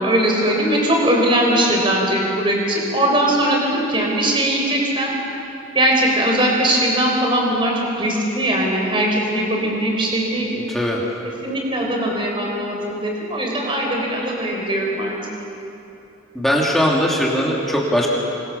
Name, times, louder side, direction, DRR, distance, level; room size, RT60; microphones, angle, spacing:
voice 1, 0.0-5.1 5.7-10.5 11.4-15.2, right 1 dB, 25° right, 0 dB, 4.3 m, -20 dB
voice 2, 10.7-11.0 16.3-18.1, equal, ahead, -3 dB, 2.9 m, -19 dB
29.0 x 25.0 x 7.1 m, 3.0 s
head